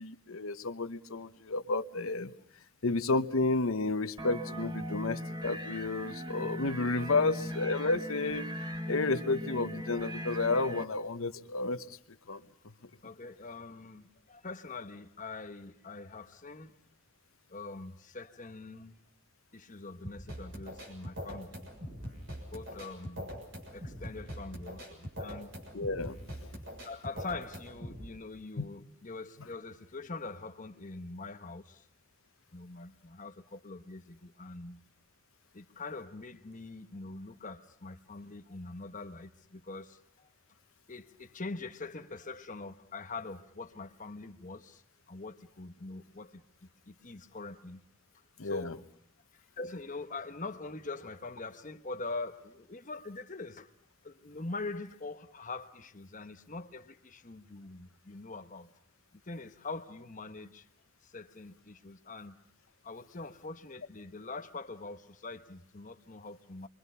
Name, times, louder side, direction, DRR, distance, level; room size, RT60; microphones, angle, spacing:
voice 1, 0.0-2.3 2.8-8.5 8.9-12.0 12.3-12.4 25.7-26.2 28.6-28.7 48.4-48.7, left 3 dB, 80° left, 1.0 m, -31 dB
sound 1, 4.2-10.8, equal, 20° right, 0.9 m, -39 dB
voice 2, 7.1-7.5 12.3-12.4 13.0-16.8 17.5-19.0 19.5-21.7 22.5-23.3 23.7-25.5 26.8-31.9 32.5-34.8 35.5-40.3 40.9-46.4 46.9-47.8 48.4-48.9 49.3-53.7 54.0-58.7 59.2-60.7 61.0-62.4 62.8-66.7, left 3 dB, 40° left, 1.1 m, -43 dB
sound 2, 20.0-28.0, equal, 60° right, 6.8 m, -43 dB
28.5 x 23.5 x 5.6 m
head